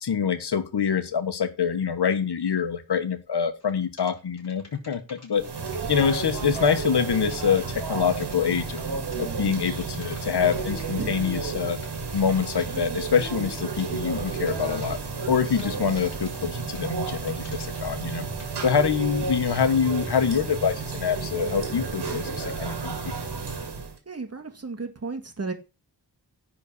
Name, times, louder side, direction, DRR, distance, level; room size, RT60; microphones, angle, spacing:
voice 1, 0.0-5.4 5.9-8.8 9.2-11.8 12.1-15.0 15.3-18.3 18.6-23.1, left 7 dB, 70° left, 1.4 m, -25 dB
sound 1, 3.6-3.7 4.0-13.6 14.2-15.0 15.6-17.9 18.4-18.6, left 2 dB, 40° left, 5.0 m, -51 dB
sound 2, 5.4-24.0, right 4 dB, 70° right, 2.2 m, -32 dB
voice 2, 24.1-25.5, right 4 dB, 35° right, 1.8 m, -34 dB
10.5 x 4.2 x 6.8 m
wide cardioid pair, 125°, 42 cm